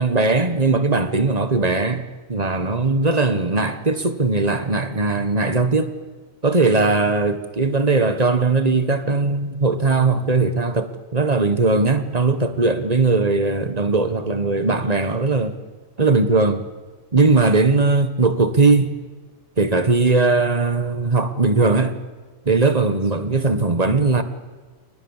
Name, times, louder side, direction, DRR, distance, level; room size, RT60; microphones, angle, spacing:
voice 1, 0.0-2.0 2.3-5.9 6.4-15.5 16.0-16.6 17.1-18.9 19.6-22.0 22.4-24.2, right 3 dB, 30° right, 10 dB, 1.6 m, -19 dB
29.0 x 19.0 x 7.4 m, 1.4 s
omnidirectional pair, 1.4 m